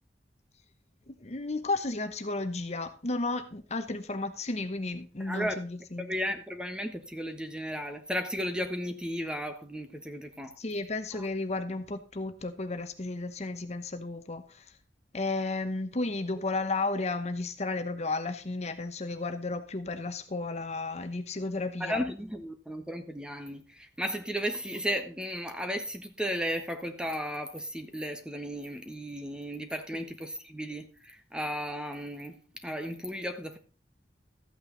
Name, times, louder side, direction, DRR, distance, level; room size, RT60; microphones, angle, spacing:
voice 1, 1.1-6.1 10.6-14.7 15.1-22.0, left 3 dB, 40° left, 0.9 m, -33 dB
voice 2, 5.2-5.5 6.0-10.6 11.1-11.3 21.8-32.4 32.6-33.6, equal, 5° right, 1.2 m, -34 dB
13.5 x 8.8 x 3.9 m
head